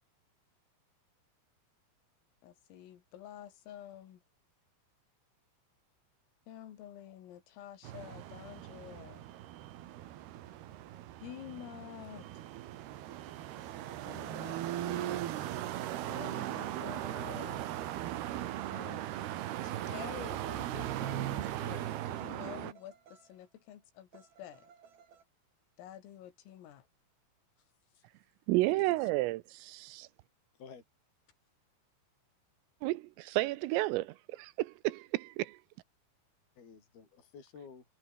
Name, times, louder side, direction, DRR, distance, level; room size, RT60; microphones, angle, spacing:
voice 1, 2.4-4.2 6.5-9.3 11.2-12.3 14.1-15.2 16.1-17.7 18.7-19.1 19.6-24.7 25.8-26.9, left 11 dB, 80° left, 5.2 m, -49 dB
sound 1, 7.8-22.7, right 13 dB, 65° right, 2.9 m, -38 dB
sound 2, 13.2-17.9 18.6-23.4 24.1-25.2, right 7 dB, 50° right, 5.2 m, -59 dB
voice 2, 27.6-28.1 28.6-29.1 30.6-30.8 36.6-37.9, left 6 dB, 50° left, 7.4 m, -53 dB
voice 3, 28.5-30.1 32.8-35.6, right 19 dB, 85° right, 3.4 m, -32 dB
omnidirectional pair, 5.9 m